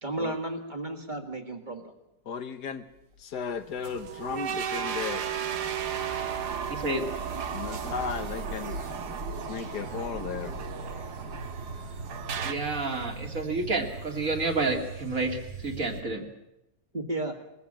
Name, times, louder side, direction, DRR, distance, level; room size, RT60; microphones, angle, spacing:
voice 1, 0.0-1.9 16.9-17.4, right 2 dB, 25° right, 5 dB, 2.1 m, -33 dB
voice 2, 2.2-2.8 3.2-5.2 7.5-8.8 9.5-10.5, left 6 dB, 70° left, 10 dB, 1.6 m, -35 dB
sound 1, 3.2-16.0, right 3 dB, 85° right, 3.0 m, -40 dB
sound 2, 3.8-12.5, right 8 dB, 70° right, 1.7 m, -35 dB
voice 3, 6.7-7.1 12.4-16.3, right 3 dB, 50° right, 3 dB, 2.7 m, -30 dB
21.5 x 15.5 x 8.8 m, 0.88 s
omnidirectional pair, 1.9 m